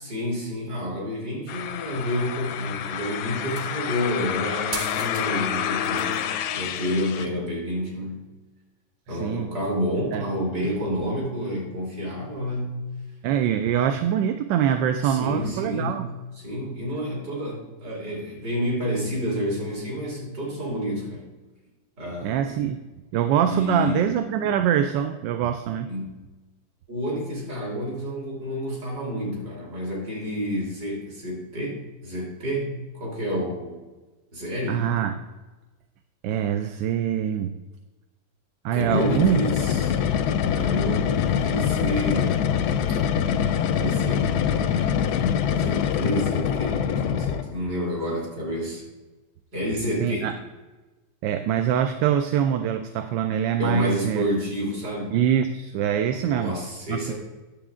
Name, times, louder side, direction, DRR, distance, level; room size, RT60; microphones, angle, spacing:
voice 1, 0.0-6.2 6.5-8.3 9.1-12.8 15.0-16.1 16.4-21.3 22.0-22.6 23.4-24.1 25.9-26.1 26.9-33.8 34.3-34.9 38.7-40.0 40.5-42.5 43.7-44.9 45.5-48.8 49.5-50.3 53.6-55.2 56.2-57.1, equal, 55° right, -3 dB, 3.4 m, -29 dB
sound 1, 1.5-7.3, left 9 dB, 90° left, 1.4 m, -29 dB
sound 2, 3.4-3.9 4.7-5.3 5.6-6.2 7.3-7.4, right 3 dB, 40° right, 0.8 m, -36 dB
voice 2, 9.1-9.5 10.1-10.2 13.2-16.1 22.2-22.8 23.1-25.9 34.7-35.1 36.2-37.6 38.6-39.4 50.0-50.3 51.2-54.2 55.1-56.5 56.9-57.1, right 9 dB, 75° right, 8 dB, 1.2 m, -24 dB
sound 3, 38.8-47.6, left 8 dB, 75° left, 1.0 m, -24 dB
9.9 x 7.1 x 3.6 m, 1.2 s
omnidirectional pair, 2.1 m